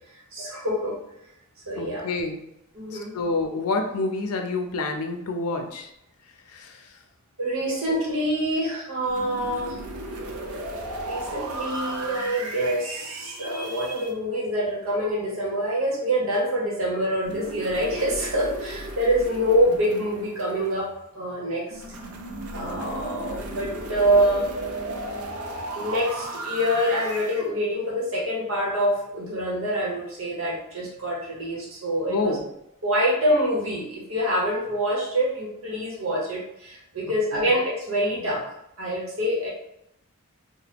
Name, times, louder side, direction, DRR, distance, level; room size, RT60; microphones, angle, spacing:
voice 1, 0.1-1.0 1.7-2.1 2.8-3.1 7.4-9.8 11.0-21.8 22.5-24.5 25.7-32.4 32.8-38.4 38.8-39.5, equal, 65° right, -4 dB, 0.9 m, -26 dB
voice 2, 1.8-2.5 2.9-5.9 6.5-7.0 7.6-7.8 32.1-32.4 37.3-37.5, left 3 dB, 85° left, 4 dB, 0.5 m, -28 dB
sound 1, 9.0-14.1 17.2-21.0 21.7-27.5, right 2 dB, 85° right, 0.5 m, -35 dB
2.9 x 2.1 x 3.4 m, 0.82 s
head